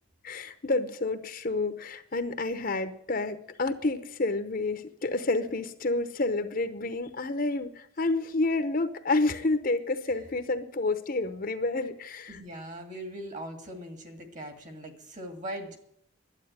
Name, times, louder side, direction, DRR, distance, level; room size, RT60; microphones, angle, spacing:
voice 1, 0.2-12.4, left 2 dB, 45° left, 9 dB, 0.8 m, -29 dB
voice 2, 12.3-15.8, right 1 dB, 40° right, 6 dB, 2.1 m, -40 dB
11.5 x 8.5 x 9.5 m, 0.73 s
head